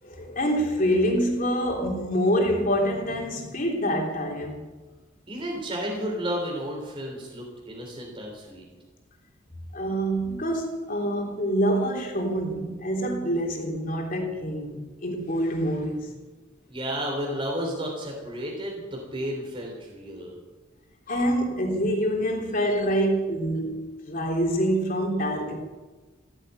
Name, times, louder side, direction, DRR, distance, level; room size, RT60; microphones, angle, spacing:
voice 1, 0.0-4.6 9.7-16.1 21.1-25.6, equal, 45° left, 3.5 m, -26 dB
voice 2, 5.3-8.7 16.7-20.4, equal, 25° right, 3.4 m, -32 dB
15.5 x 9.9 x 9.2 m
head